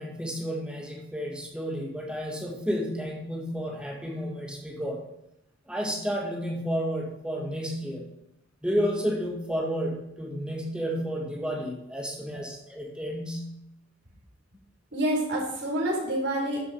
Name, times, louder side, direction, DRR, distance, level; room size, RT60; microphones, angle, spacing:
voice 1, 0.0-5.0 5.7-8.1 8.6-13.5, equal, 5° right, -1 dB, 1.7 m, -31 dB
voice 2, 14.9-16.7, right 1 dB, 60° right, -4 dB, 5.0 m, -28 dB
12.5 x 7.6 x 4.6 m, 0.86 s
head